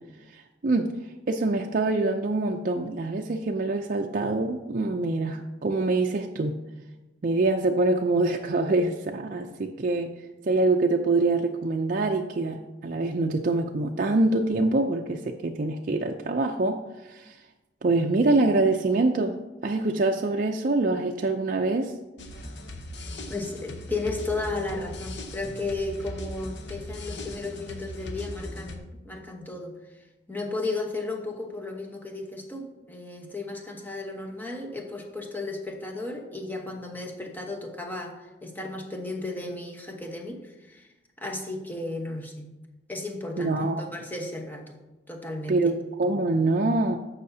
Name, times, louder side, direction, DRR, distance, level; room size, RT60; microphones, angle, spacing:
voice 1, 0.6-0.9 1.3-6.6 7.2-10.1 10.4-16.8 17.1-17.3 17.8-19.4 19.6-21.9 43.4-43.8 45.5-47.0, right 2 dB, 50° right, 2 dB, 0.5 m, -25 dB
sound 1, 22.2-28.8, left 1 dB, 80° left, 0.9 m, -39 dB
voice 2, 23.3-29.8 30.3-40.9 41.2-42.5 42.9-44.8 45.1-45.7, left 2 dB, 10° left, 1 dB, 1.1 m, -34 dB
15.0 x 5.6 x 2.7 m, 1.1 s
head